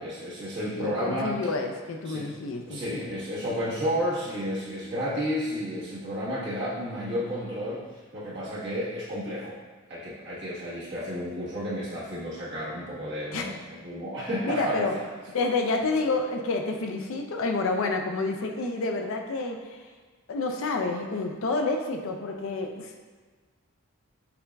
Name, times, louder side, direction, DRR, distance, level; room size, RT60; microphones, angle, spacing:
voice 1, 0.0-1.4 2.0-2.3 2.7-9.6 9.9-15.1, equal, 50° right, -10 dB, 1.3 m, -32 dB
voice 2, 0.8-3.2 13.3-13.5 14.4-14.9 15.3-19.8 20.3-23.0, left 3 dB, 65° left, 3 dB, 0.4 m, -29 dB
6.8 x 2.4 x 2.3 m, 1.4 s
head